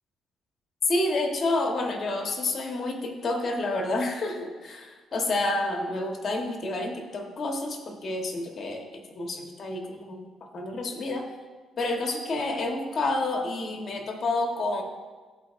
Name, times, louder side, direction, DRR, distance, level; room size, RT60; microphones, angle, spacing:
voice 1, 0.9-10.2 10.5-11.2 11.8-14.8, left 2 dB, 50° left, 2 dB, 1.1 m, -29 dB
12.0 x 4.4 x 2.5 m, 1.3 s
cardioid pair, 90°, 0 cm